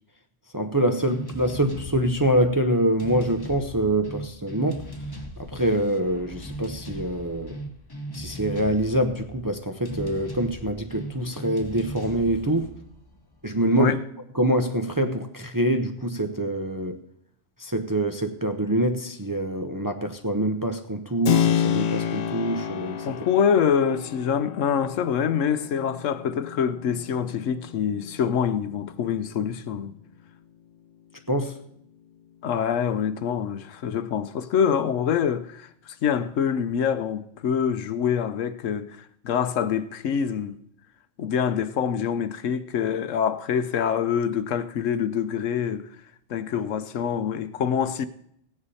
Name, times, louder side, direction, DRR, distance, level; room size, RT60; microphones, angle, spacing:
voice 1, 0.5-4.8 5.4-7.6 8.1-12.7 13.4-14.0 14.3-17.0 17.6-23.1 31.3-31.6, right 1 dB, 20° right, 0.6 m, -25 dB
sound 1, 1.1-13.8, right 1 dB, 20° left, 0.9 m, -38 dB
Keyboard (musical), 21.2-29.8, left 9 dB, 55° left, 0.5 m, -30 dB
voice 2, 23.0-30.0 32.4-38.9 39.2-40.6 41.2-45.9 46.3-48.1, left 7 dB, 80° left, 1.1 m, -25 dB
16.0 x 9.9 x 4.1 m
omnidirectional pair, 1.3 m